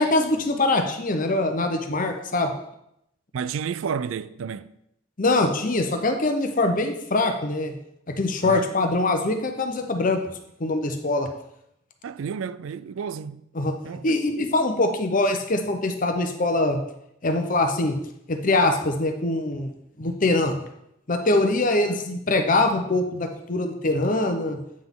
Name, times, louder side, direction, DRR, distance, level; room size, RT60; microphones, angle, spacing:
voice 1, 0.0-2.5 5.2-7.8 8.1-10.2 10.6-11.3 13.5-13.7 14.0-16.8 17.2-18.0 18.3-19.7 20.0-20.6 21.1-24.6, left 2 dB, 45° left, 0.9 m, -23 dB
voice 2, 3.3-4.7 8.4-8.7 12.0-13.4 13.8-14.2, right 6 dB, 80° right, 0.4 m, -31 dB
8.8 x 5.8 x 3.7 m
head